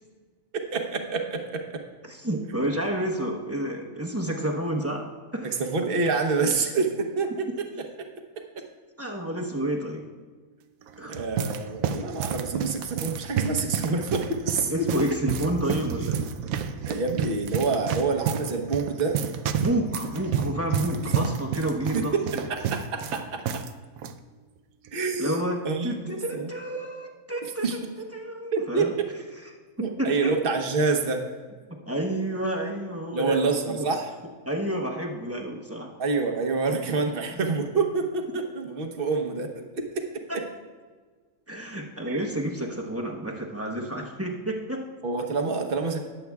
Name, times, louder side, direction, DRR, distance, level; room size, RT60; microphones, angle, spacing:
voice 1, 0.7-1.8 5.6-8.1 8.4-8.7 11.1-14.7 16.8-19.2 21.0-21.1 21.9-22.6 22.9-23.6 24.9-25.4 25.6-26.5 27.6-27.8 28.5-28.9 29.8-31.3 33.1-34.1 36.0-40.4 42.1-42.3 45.0-46.0, right 4 dB, 45° right, 4 dB, 1.1 m, -27 dB
voice 2, 2.1-5.1 5.3-5.6 9.0-10.1 11.0-11.2 14.7-16.2 19.6-22.2 25.2-26.0 26.3-27.6 28.1-28.9 29.8-30.3 31.7-33.9 34.4-35.9 40.3-40.4 41.5-44.8, right 1 dB, 10° right, -1 dB, 0.9 m, -30 dB
sound 1, 10.8-23.7 24.0-24.1 24.9-25.2, right 8 dB, 80° right, 1.0 m, -30 dB
21.0 x 7.8 x 2.3 m, 1.5 s
omnidirectional pair, 1.5 m